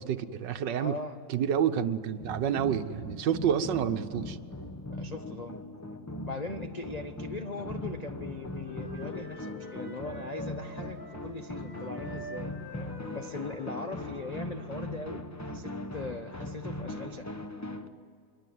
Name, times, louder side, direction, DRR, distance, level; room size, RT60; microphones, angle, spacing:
voice 1, 0.0-0.9 1.3-4.4, right 8 dB, 65° right, 10 dB, 1.5 m, -29 dB
voice 2, 0.8-1.2 4.9-5.6 6.1-17.3, left 3 dB, 50° left, 6 dB, 0.5 m, -40 dB
sound 1, 2.2-17.9, left 1 dB, 15° left, 0.7 m, -40 dB
Wind instrument woodwind instrument, 7.7-11.2 11.5-15.4, left 1 dB, 90° left, 6.8 m, -46 dB
26.0 x 22.5 x 9.4 m, 2.3 s
omnidirectional pair, 2.1 m